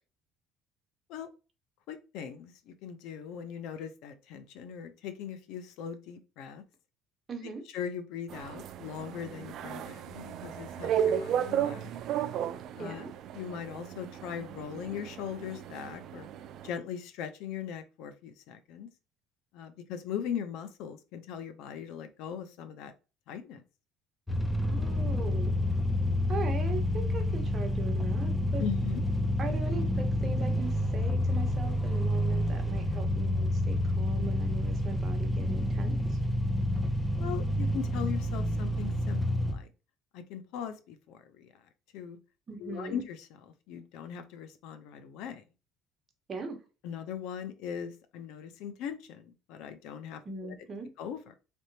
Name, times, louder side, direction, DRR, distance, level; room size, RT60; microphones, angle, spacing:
voice 1, 1.9-6.6 7.7-11.9 12.8-13.1 13.3-16.3 16.6-18.9 19.5-22.9 23.3-23.6 28.6-29.0 37.2-39.7 40.1-41.7 41.9-42.2 42.6-45.4 46.8-50.5 51.0-51.3, left 8 dB, 75° left, 10 dB, 0.6 m, -40 dB
voice 2, 7.3-7.6 12.8-13.1 24.6-25.5 26.3-28.6 29.4-36.2 42.5-43.0 46.3-46.6 50.2-50.9, right 3 dB, 30° right, 4 dB, 1.1 m, -40 dB
sound 1, 8.3-16.7, right 9 dB, 55° right, 0.4 m, -34 dB
sound 2, 24.3-39.5, left 1 dB, 5° left, 0.6 m, -29 dB
4.2 x 3.5 x 2.8 m, 0.31 s
cardioid pair, 130°, 0 cm